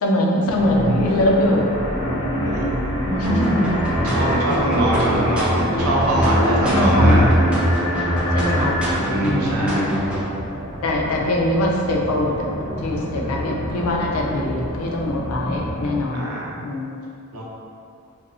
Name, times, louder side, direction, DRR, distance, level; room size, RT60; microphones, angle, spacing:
voice 1, 0.0-1.7 3.1-3.8 6.6-7.3 8.3-8.8 9.1-9.9 10.8-12.5 12.8-16.3 16.6-17.0, left 1 dB, 75° left, -1 dB, 0.4 m, -22 dB
sound 1, 0.5-16.0, equal, 50° left, 0.7 m, -24 dB
sound 2, 3.2-10.3, equal, 5° right, 0.3 m, -24 dB
voice 2, 4.0-7.3 9.0-9.9 16.1-16.6 17.3-17.4, right 1 dB, 90° right, -4 dB, 0.5 m, -24 dB
2.7 x 2.0 x 2.5 m, 2.4 s
head